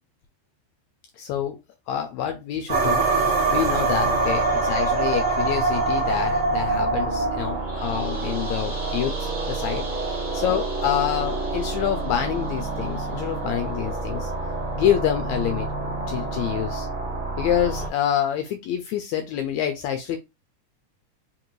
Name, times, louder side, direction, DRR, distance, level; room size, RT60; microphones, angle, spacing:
voice 1, 1.2-1.6 1.9-3.1 3.5-9.9 10.3-14.3 14.8-15.7 16.1-16.9 17.4-20.2, left 10 dB, 80° left, 6 dB, 1.7 m, -27 dB
sound 1, 2.7-17.9, right 3 dB, 75° right, 0.7 m, -26 dB
5.2 x 2.5 x 3.0 m, 0.23 s
omnidirectional pair, 3.7 m